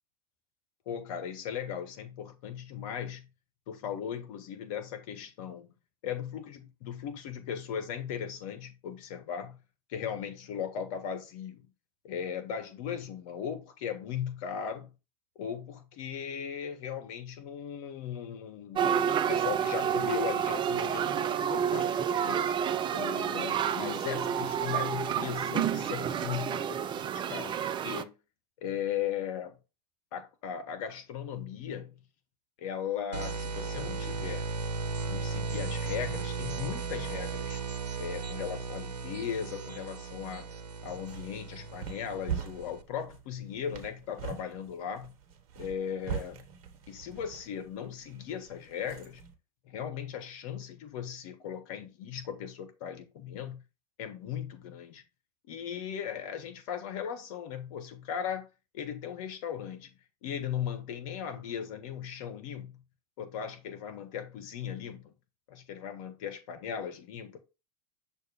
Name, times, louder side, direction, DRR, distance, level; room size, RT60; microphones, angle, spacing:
voice 1, 0.8-3.3 3.7-5.7 6.0-9.6 9.9-11.7 12.0-14.9 15.4-21.9 22.2-22.4 22.9-27.5 27.8-28.1 28.6-29.5 30.1-31.9 32.6-34.5 35.1-37.6 38.0-40.5 40.8-45.1 45.5-46.4 46.9-49.2 49.6-53.6 54.0-55.0 55.5-58.5 58.7-59.9 60.2-62.7 63.2-65.1 65.5-67.4, left 8 dB, 55° left, 1.4 m, -37 dB
sound 1, 18.8-28.0, right 8 dB, 25° right, 0.4 m, -29 dB
sound 2, 33.1-42.8, right 4 dB, 90° right, 0.6 m, -36 dB
sound 3, 40.8-49.3, right 8 dB, 55° right, 1.3 m, -42 dB
6.3 x 2.8 x 5.2 m
figure-of-eight pair, 85°, 20 cm